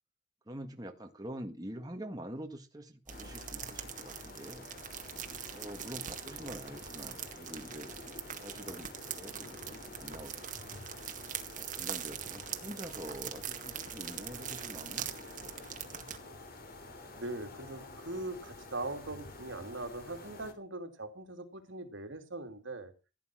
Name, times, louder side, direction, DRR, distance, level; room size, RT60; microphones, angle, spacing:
voice 1, 0.5-4.7 5.5-10.8 11.5-15.7, right 1 dB, 20° right, 4 dB, 1.7 m, -46 dB
sound 1, 3.1-20.5, left 2 dB, 50° left, 3.2 m, -49 dB
sound 2, 3.1-16.2, right 9 dB, 40° right, 1.9 m, -43 dB
voice 2, 17.2-22.9, right 2 dB, 75° right, 5 dB, 2.9 m, -41 dB
16.0 x 9.8 x 6.3 m, 0.32 s
head